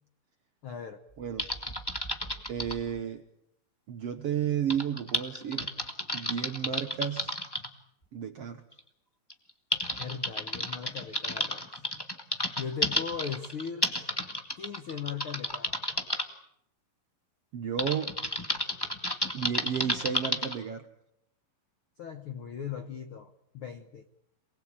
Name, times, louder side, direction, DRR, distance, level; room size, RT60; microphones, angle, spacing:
voice 1, 0.6-1.0 10.0-11.7 12.6-13.9 14.6-15.7 22.0-24.0, left 7 dB, 85° left, 9 dB, 1.1 m, -38 dB
voice 2, 1.2-1.5 2.5-3.2 3.9-5.7 6.1-7.4 8.1-8.6 17.5-18.2 19.3-20.9, right 8 dB, 70° right, 7 dB, 1.5 m, -32 dB
Typing, 1.4-2.8 4.7-7.7 8.7-8.8 9.3-16.2 17.8-20.5, left 1 dB, 15° left, 0.9 m, -32 dB
28.0 x 20.5 x 8.8 m, 0.78 s
omnidirectional pair, 4.2 m